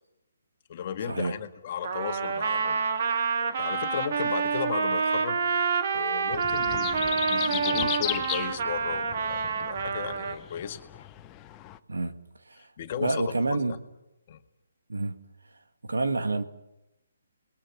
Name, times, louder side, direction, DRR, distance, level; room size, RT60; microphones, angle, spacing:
voice 1, 0.7-2.8 3.1-3.3 3.6-5.4 5.9-11.1 12.6-13.6 14.3-14.4, left 8 dB, 45° left, 1.9 m, -35 dB
Trumpet, 1.8-10.4, right 5 dB, 50° right, 2.2 m, -28 dB
sound 1, 6.3-11.8, left 14 dB, 20° left, 0.9 m, -36 dB
voice 2, 13.0-13.8 14.9-15.2 15.8-16.4, right 2 dB, 85° right, 2.0 m, -28 dB
29.0 x 21.5 x 6.2 m
hypercardioid pair, 150°, 0 cm